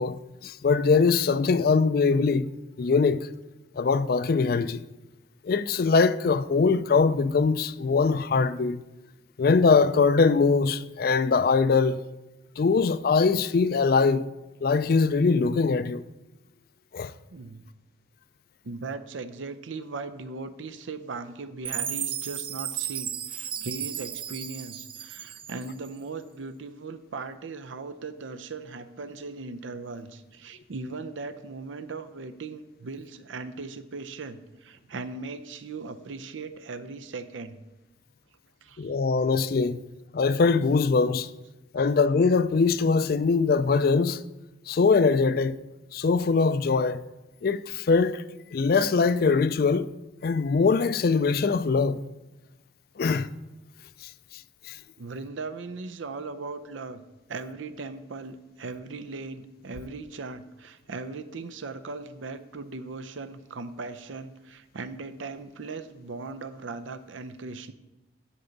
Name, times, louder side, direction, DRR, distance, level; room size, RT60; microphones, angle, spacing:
voice 1, 0.0-2.5 2.8-3.3 3.8-4.9 5.4-8.8 9.4-12.0 12.6-14.3 14.6-16.0 16.9-17.1 38.8-39.8 40.1-41.3 41.7-44.2 44.7-45.6 45.9-47.0 47.4-48.2 48.5-49.9 50.2-52.0 53.0-53.3 54.7-54.8, left 4 dB, 50° left, 0.4 m, -22 dB
voice 2, 17.3-17.6 18.6-37.6 38.6-38.9 41.8-41.9 55.0-57.0 57.3-67.7, right 3 dB, 85° right, 0.6 m, -38 dB
Chime, 21.6-25.9, right 9 dB, 30° right, 0.3 m, -34 dB
11.0 x 7.0 x 3.9 m
head